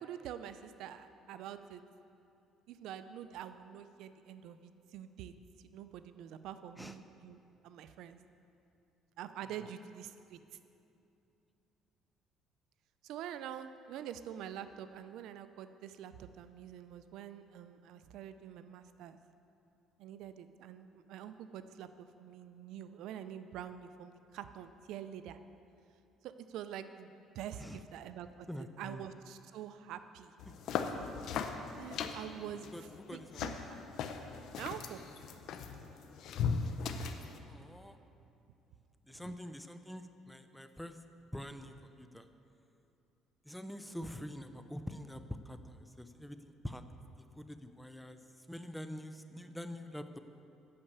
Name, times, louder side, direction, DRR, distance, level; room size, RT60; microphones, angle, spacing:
voice 1, 0.0-1.8 2.7-5.3 5.6-8.2 9.2-10.4 13.0-19.2 20.0-25.4 26.2-30.3 31.7-32.7 33.1-33.8 34.6-35.0 39.1-39.3, right 10 dB, 75° right, 11 dB, 0.4 m, -46 dB
voice 2, 28.5-29.0 30.5-30.6 32.7-33.7 37.5-38.0 39.1-41.0 41.3-42.3 43.4-46.4 46.6-46.8 47.4-50.2, equal, 5° left, 9 dB, 0.5 m, -45 dB
sound 1, 30.4-37.4, left 6 dB, 65° left, 0.7 m, -38 dB
8.7 x 6.6 x 8.2 m, 2.7 s
cardioid pair, 115°, 0 cm